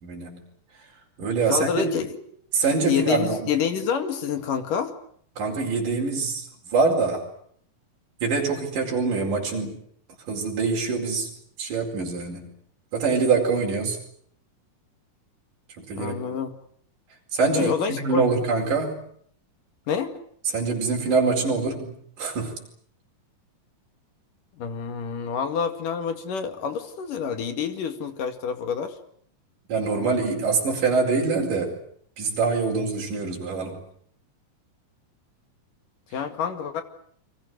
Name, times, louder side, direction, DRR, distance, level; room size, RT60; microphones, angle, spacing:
voice 1, 0.0-0.4 1.2-1.9 2.5-3.5 5.4-6.5 6.7-7.3 8.2-9.8 10.3-11.3 11.6-12.5 12.9-14.0 15.8-16.2 17.3-19.0 20.5-22.6 29.7-31.8 32.2-33.8, right 4 dB, 70° right, -1 dB, 6.3 m, -24 dB
voice 2, 1.5-2.2 2.8-4.9 16.0-16.5 17.5-18.2 19.9-20.1 24.6-29.0 36.1-36.8, left 7 dB, 75° left, 8 dB, 3.7 m, -27 dB
29.5 x 24.0 x 6.6 m, 0.63 s
omnidirectional pair, 3.8 m